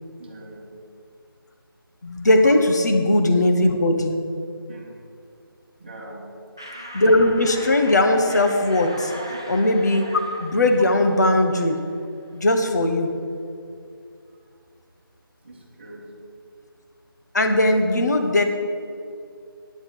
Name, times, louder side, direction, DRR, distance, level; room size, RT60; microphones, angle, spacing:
voice 1, 0.2-0.7 4.7-5.0 5.8-6.2 15.4-16.0, right 1 dB, 30° right, -1 dB, 1.7 m, -42 dB
voice 2, 2.0-4.2 6.9-9.1 9.5-11.8 12.3-13.1 17.3-18.4, left 1 dB, 50° left, 5 dB, 1.3 m, -19 dB
sound 1, 6.6-12.1, equal, 10° right, 0.3 m, -38 dB
9.8 x 7.0 x 8.5 m, 2.5 s
figure-of-eight pair, 170°, 12 cm